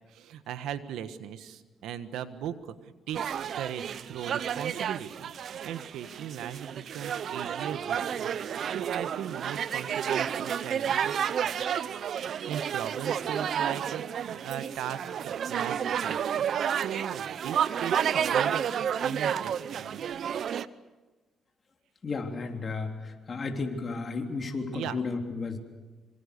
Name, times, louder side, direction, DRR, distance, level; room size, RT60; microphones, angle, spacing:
voice 1, 0.1-8.3 8.7-11.2 12.5-20.0 24.7-25.0, right 9 dB, 85° right, 11 dB, 1.5 m, -38 dB
sound 1, 3.1-20.7, right 8 dB, 60° right, 0.7 m, -31 dB
voice 2, 22.0-25.6, left 4 dB, 40° left, 3 dB, 3.5 m, -33 dB
26.5 x 24.5 x 6.8 m, 1.2 s
cardioid pair, 90°, 0 cm